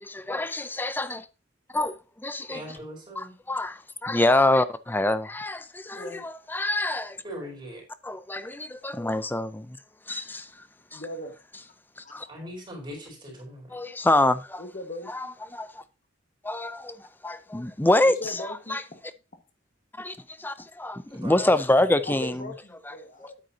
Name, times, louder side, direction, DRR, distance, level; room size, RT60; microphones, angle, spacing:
voice 1, 0.0-1.2 1.7-2.8 3.2-7.2 8.0-9.8 10.1-10.5 10.9-11.0 12.0-12.3 13.7-14.6 15.1-15.8 16.4-18.8 20.0-22.5 22.9-23.0 23.2-23.3, left 2 dB, 10° left, 0.5 m, -26 dB
voice 2, 2.5-3.3 7.2-7.8 12.3-13.7 21.1-21.4, equal, 25° right, 4.2 m, -40 dB
voice 3, 5.9-6.3 10.9-11.3 12.0-12.1 14.6-15.1 18.0-19.0 19.3-19.4 22.1-23.4, left 1 dB, 45° left, 1.5 m, -39 dB
9.3 x 8.3 x 2.8 m
head